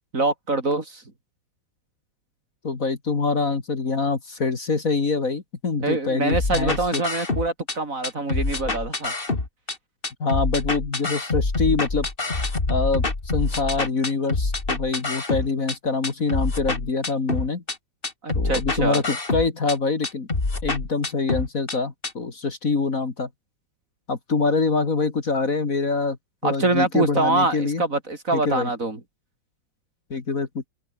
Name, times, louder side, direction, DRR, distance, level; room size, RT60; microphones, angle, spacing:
voice 1, 0.1-1.0 5.8-9.1 18.2-19.0 26.4-29.0, right 2 dB, 40° right, 4.1 m, -24 dB
voice 2, 2.6-7.0 10.2-12.1 12.7-17.6 18.3-20.3 20.6-23.3 24.1-26.2 26.4-27.8 28.3-28.7 30.1-30.7, left 4 dB, 45° left, 2.7 m, -25 dB
sound 1, 6.3-7.8 8.0-9.8 10.0-15.8 16.0-17.8 18.0-19.8 20.0-21.8 22.0-22.1, left 3 dB, 25° left, 2.7 m, -26 dB
open air
omnidirectional pair, 2.1 m